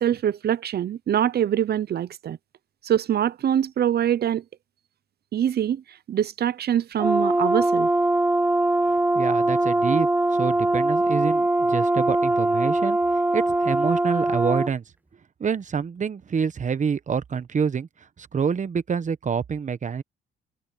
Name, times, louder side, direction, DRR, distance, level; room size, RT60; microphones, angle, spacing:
voice 1, 0.0-2.4 2.8-4.4 5.3-5.8 6.1-7.9, right 10 dB, 55° right, 0.7 m, -24 dB
Brass instrument, 7.0-14.7, right 2 dB, 10° right, 0.7 m, -22 dB
voice 2, 9.1-13.0 13.3-14.8 15.4-17.9 18.2-20.0, right 6 dB, 40° right, 1.1 m, -27 dB
cardioid pair, 90°, 20 cm